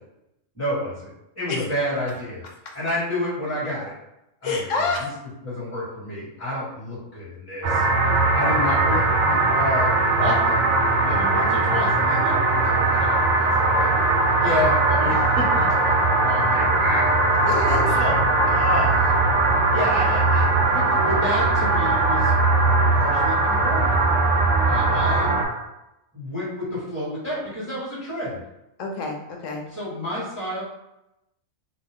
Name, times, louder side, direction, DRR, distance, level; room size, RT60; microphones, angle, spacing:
voice 1, 0.5-1.1 1.3-2.4 2.7-3.9 4.4-4.9 5.4-7.8 8.3-10.7 11.0-14.1 14.4-15.9 16.2-17.2 17.8-18.2 18.5-19.0 19.7-22.3 22.9-24.0 24.7-25.3 26.1-28.4 29.7-30.6, equal, 10° left, -9 dB, 1.5 m, -29 dB
voice 2, 4.4-5.1 17.5-17.9 28.8-29.6, left 3 dB, 80° left, 2 dB, 1.1 m, -27 dB
sound 1, 7.6-25.4, right 2 dB, 70° right, 1.0 m, -20 dB
3.9 x 2.2 x 3.5 m, 0.89 s
omnidirectional pair, 1.3 m